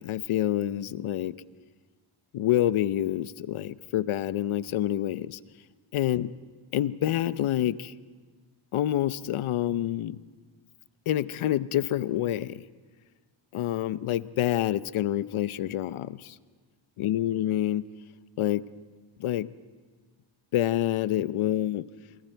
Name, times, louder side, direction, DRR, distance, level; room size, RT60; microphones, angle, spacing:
voice 1, 0.0-1.3 2.3-5.4 5.9-6.3 6.7-7.9 8.7-10.2 11.1-12.6 13.5-16.4 17.0-17.8 18.4-18.7 19.2-19.5 20.5-21.9, left 12 dB, 80° left, 16 dB, 0.7 m, -27 dB
28.0 x 24.0 x 4.5 m, 1.4 s
cardioid pair, 105°, 49 cm